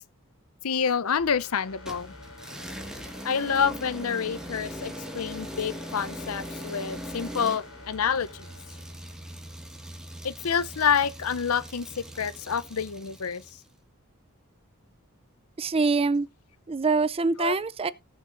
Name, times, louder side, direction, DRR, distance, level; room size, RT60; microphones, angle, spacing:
voice 1, 0.6-2.1 3.2-8.5 10.2-11.9 12.2-13.4 17.4-17.5, left 7 dB, 85° left, 0.6 m, -28 dB
sound 1, 1.2-9.9 10.2-10.3, left 2 dB, 65° left, 4.4 m, -47 dB
sound 2, 1.9-13.6, equal, 5° right, 1.7 m, -41 dB
voice 2, 15.6-16.3 16.7-17.9, right 4 dB, 25° right, 0.5 m, -24 dB
18.5 x 7.2 x 2.6 m
head